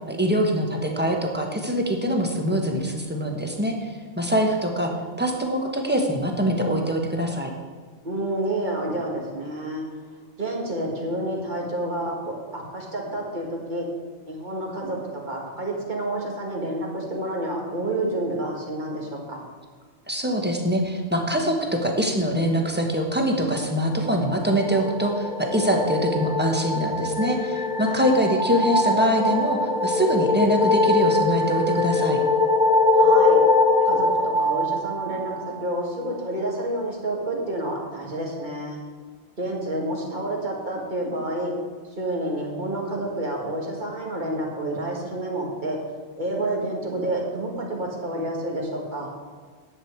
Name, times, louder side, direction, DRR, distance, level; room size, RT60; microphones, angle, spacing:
voice 1, 0.1-4.9 5.2-7.5 20.1-32.2, equal, 10° right, 2 dB, 1.2 m, -24 dB
voice 2, 8.0-9.8 10.4-13.9 14.3-19.4 27.9-28.1 32.9-33.4 33.9-34.1 34.4-35.3 35.6-38.8 39.4-41.5 42.0-45.8 46.2-49.1, right 1 dB, 40° right, -1 dB, 2.0 m, -29 dB
sound 1, 24.4-35.8, left 2 dB, 45° left, 0.8 m, -22 dB
10.5 x 8.0 x 4.6 m, 1.5 s
omnidirectional pair, 1.2 m